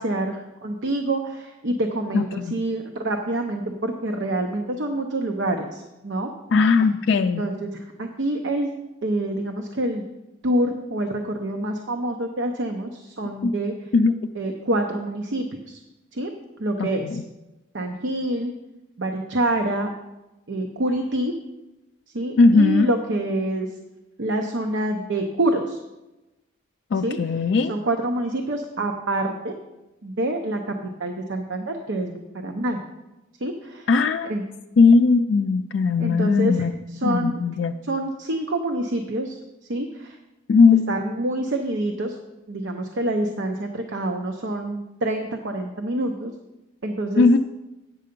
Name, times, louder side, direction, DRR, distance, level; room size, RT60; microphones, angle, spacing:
voice 1, 0.0-6.3 7.1-8.7 9.0-10.0 10.4-13.7 14.4-15.8 16.1-16.3 16.6-17.1 17.7-18.5 19.0-19.9 20.5-21.3 22.1-23.7 24.2-25.8 27.0-27.2 27.7-29.5 30.0-32.8 33.4-33.9 34.2-34.4 36.0-36.7 36.9-37.4 37.9-39.4 39.7-40.2 40.9-42.1 42.5-46.3 46.8-47.2, right 1 dB, 70° right, 4 dB, 0.7 m, -26 dB
voice 2, 2.1-2.6 6.5-7.4 13.4-13.5 13.9-14.3 16.8-17.2 22.4-22.9 26.9-27.7 33.9-34.3 34.8-36.8 37.0-37.7 40.5-40.9 47.2-47.4, left 4 dB, 65° left, 5 dB, 0.3 m, -18 dB
9.0 x 6.7 x 5.2 m, 1.0 s
head